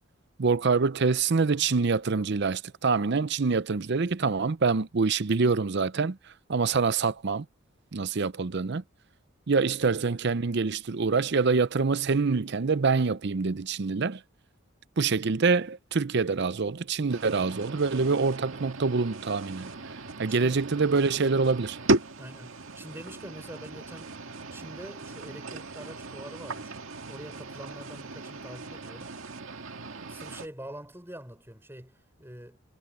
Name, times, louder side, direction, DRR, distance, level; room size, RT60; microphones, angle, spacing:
voice 1, 0.4-6.2 6.5-7.4 7.9-8.8 9.5-14.2 15.0-19.7 20.2-21.8, right 4 dB, 55° right, 0.6 m, -25 dB
sound 1, 17.1-30.5, right 2 dB, 75° right, 1.9 m, -36 dB
voice 2, 20.3-20.6 22.2-26.7 27.1-29.2 29.9-32.6, right 1 dB, 10° right, 5.7 m, -45 dB
head